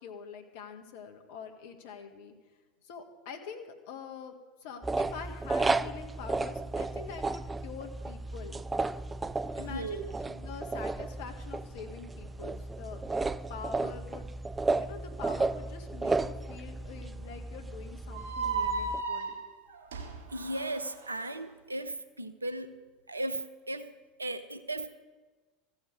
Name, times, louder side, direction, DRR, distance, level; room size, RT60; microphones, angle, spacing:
voice 1, 0.0-2.3 2.8-4.3 4.6-8.6 9.6-13.0 13.5-14.3 14.7-19.3, left 6 dB, 65° left, 5 dB, 1.7 m, -45 dB
sound 1, 4.8-19.0, right 3 dB, 15° right, 0.5 m, -34 dB
voice 2, 9.6-10.1 20.3-23.9 24.2-25.0, right 1 dB, 90° right, 11 dB, 0.8 m, -36 dB
sound 2, 18.1-21.3, right 4 dB, 65° right, 2.3 m, -35 dB
15.0 x 7.3 x 8.9 m, 1.3 s
figure-of-eight pair, 75°, 0 cm